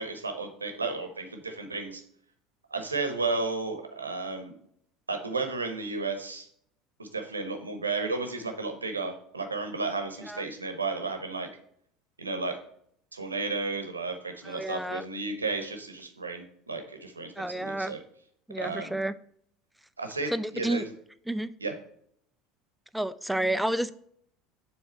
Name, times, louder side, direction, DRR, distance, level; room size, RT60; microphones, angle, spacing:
voice 1, 0.0-2.0 2.7-4.5 5.1-6.5 7.0-11.5 12.2-12.6 13.1-18.0 18.5-19.0 20.0-20.8 21.6-21.7, right 3 dB, 85° right, 6 dB, 0.8 m, -33 dB
voice 2, 14.4-15.0 17.4-17.9 18.5-19.1 20.3-20.8 21.3-21.5 22.9-23.9, right 1 dB, 5° right, 14 dB, 0.4 m, -30 dB
7.1 x 3.5 x 4.4 m, 0.67 s
figure-of-eight pair, 70°, 0 cm